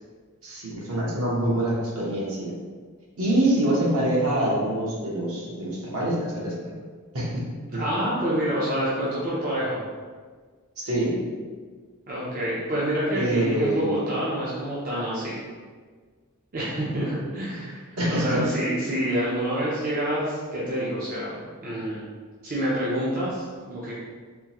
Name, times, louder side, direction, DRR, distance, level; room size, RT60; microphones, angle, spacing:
voice 1, 0.4-2.5 3.2-6.5 7.1-7.4 7.7-7.8 10.8-11.1 13.1-14.0 18.0-18.4, right 1 dB, 65° right, -5 dB, 1.0 m, -25 dB
voice 2, 7.7-9.8 12.1-15.4 16.5-22.0 22.4-24.0, equal, 40° right, -8 dB, 0.6 m, -27 dB
3.6 x 2.7 x 2.9 m, 1.5 s
head